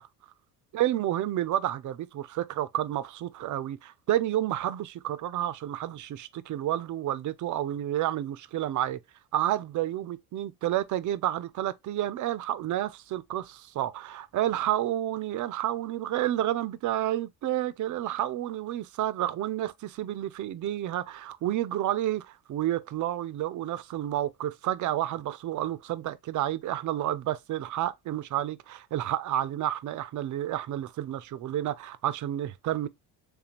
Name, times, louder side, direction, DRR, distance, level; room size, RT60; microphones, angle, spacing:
voice 1, 0.7-9.0 9.3-32.9, right 13 dB, 40° right, 0.5 m, -30 dB
3.5 x 3.3 x 2.9 m
hypercardioid pair, 65°, 45 cm